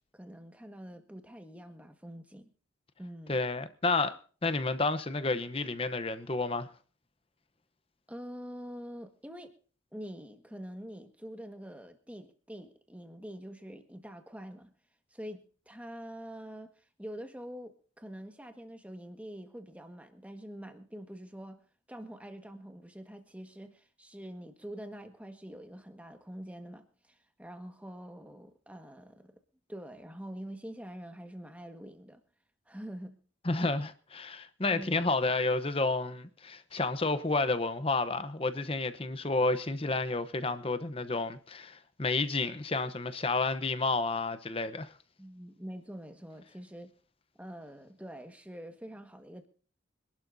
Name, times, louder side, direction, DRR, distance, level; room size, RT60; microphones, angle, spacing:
voice 1, 0.1-2.5 3.0-3.4 8.1-9.5 9.9-14.7 15.1-21.6 21.9-29.3 29.7-32.2 32.7-33.2 34.7-35.0 45.2-46.9 47.4-49.5, equal, 5° right, 1.5 m, -45 dB
voice 2, 3.3-4.2 4.4-6.7 33.4-44.9, left 3 dB, 30° left, 0.9 m, -30 dB
25.5 x 12.0 x 2.7 m
head